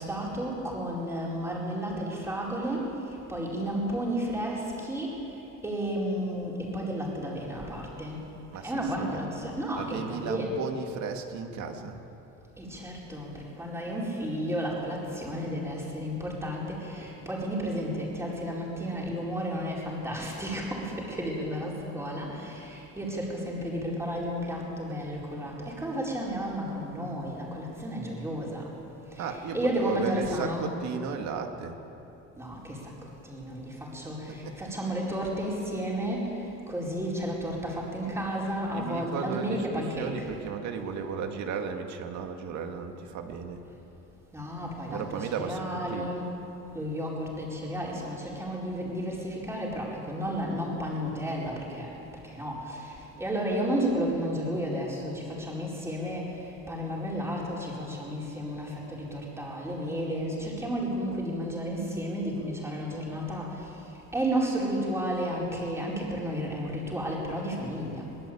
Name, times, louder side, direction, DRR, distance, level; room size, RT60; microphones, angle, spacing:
voice 1, 0.0-8.2 8.6-10.6 12.6-28.7 29.1-30.8 32.4-40.3 44.3-46.3 46.7-68.1, equal, 10° right, -3 dB, 4.7 m, -32 dB
voice 2, 8.5-9.2 9.7-12.0 29.2-31.8 34.3-34.7 38.7-43.6 44.9-46.2, right 6 dB, 65° right, 5 dB, 2.2 m, -35 dB
23.0 x 21.5 x 8.7 m, 3.0 s
cardioid pair, 175°, 30 cm